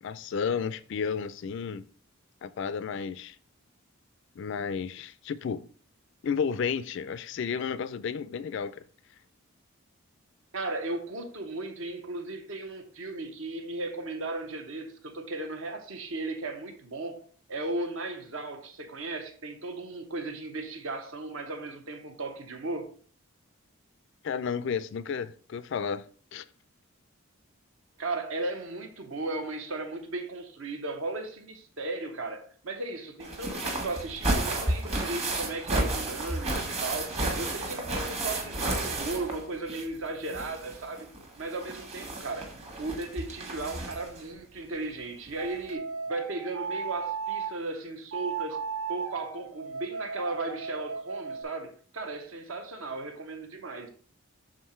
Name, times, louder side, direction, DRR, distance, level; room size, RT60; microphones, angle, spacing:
voice 1, 0.0-1.8 2.4-3.4 4.4-5.7 6.2-8.8 24.2-26.1 26.3-26.4, left 6 dB, 55° left, 0.3 m, -32 dB
voice 2, 10.5-22.9 28.0-41.1 41.4-48.6 48.9-53.9, right 2 dB, 65° right, 1.0 m, -36 dB
sound 1, 33.2-40.0 40.2-44.2 45.3-45.4 45.7-45.8, right 2 dB, 30° right, 1.2 m, -32 dB
sound 2, 45.4-47.6 48.1-51.4, right 5 dB, 85° right, 0.8 m, -36 dB
6.5 x 3.8 x 4.3 m
head